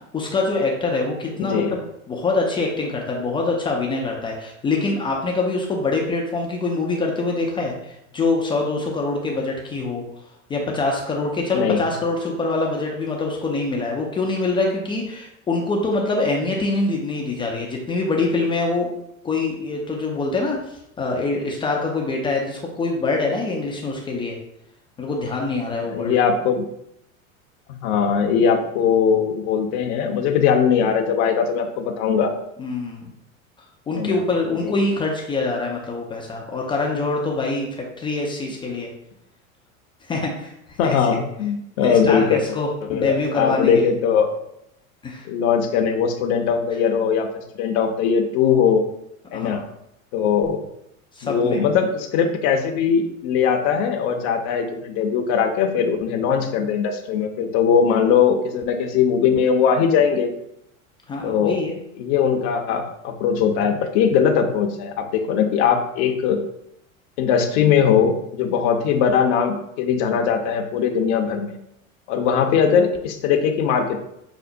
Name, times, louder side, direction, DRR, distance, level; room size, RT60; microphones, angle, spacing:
voice 1, 0.1-1.8 2.1-10.0 10.5-18.9 19.2-20.6 21.0-24.4 25.0-26.1 32.6-33.1 33.9-38.9 40.1-40.5 40.8-41.0 41.8-43.9 45.0-45.3 49.3-49.6 51.2-51.6 61.1-61.8, left 3 dB, 15° left, -1 dB, 0.3 m, -24 dB
voice 2, 1.4-1.8 11.5-11.9 25.9-26.7 27.8-32.3 34.0-34.2 34.6-34.8 40.8-42.4 42.9-44.3 45.3-47.3 47.6-48.8 49.3-49.6 50.1-50.6 51.2-60.3 61.2-61.6 62.0-66.4 67.2-71.5 72.1-74.0, left 7 dB, 55° left, 3 dB, 0.6 m, -20 dB
5.9 x 2.0 x 2.6 m, 0.78 s
hypercardioid pair, 85°, 41 cm